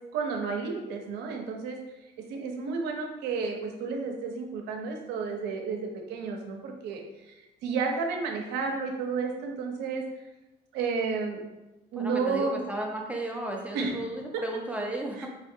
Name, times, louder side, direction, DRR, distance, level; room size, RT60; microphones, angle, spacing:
voice 1, 0.1-1.8 2.3-7.0 7.3-10.0 10.7-11.4 11.9-12.7 13.7-14.0 15.2-15.3, right 4 dB, 85° right, 2 dB, 0.7 m, -31 dB
voice 2, 12.0-15.3, right 1 dB, 10° right, -1 dB, 0.5 m, -34 dB
4.3 x 2.5 x 2.7 m, 1.0 s
cardioid pair, 110°, 17 cm